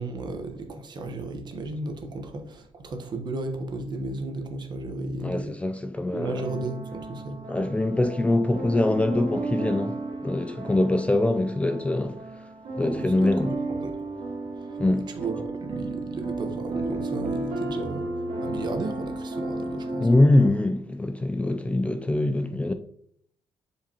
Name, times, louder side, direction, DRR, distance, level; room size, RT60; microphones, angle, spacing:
voice 1, 0.0-5.5 6.1-7.4 12.8-14.0 14.6-14.8 15.2-20.1, right 2 dB, 45° right, 1.1 m, -34 dB
voice 2, 5.2-6.4 7.5-12.2 12.8-13.5 14.8-15.1 20.0-22.7, left 2 dB, 10° left, 0.4 m, -23 dB
sound 1, 6.3-20.5, right 2 dB, 70° right, 2.0 m, -33 dB
7.1 x 4.9 x 2.9 m
cardioid pair, 120°, 10 cm